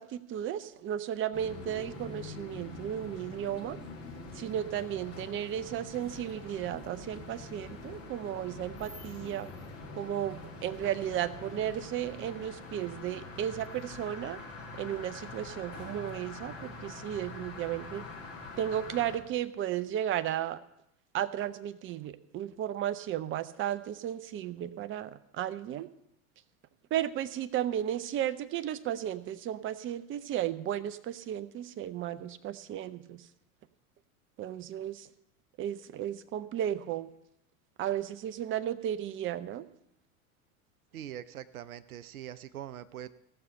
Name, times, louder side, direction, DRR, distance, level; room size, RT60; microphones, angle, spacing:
voice 1, 0.0-3.8 4.3-9.5 10.0-14.4 14.7-18.0 18.6-20.6 21.1-25.9 26.9-33.2 34.4-35.1 35.6-37.1 37.8-39.6, right 11 dB, 30° right, 13 dB, 0.6 m, -34 dB
sound 1, 1.3-19.2, left 3 dB, 35° left, 4.1 m, -45 dB
voice 2, 40.9-43.1, right 11 dB, 85° right, 14 dB, 0.6 m, -43 dB
15.5 x 6.6 x 5.5 m, 0.79 s
hypercardioid pair, 85°, 42 cm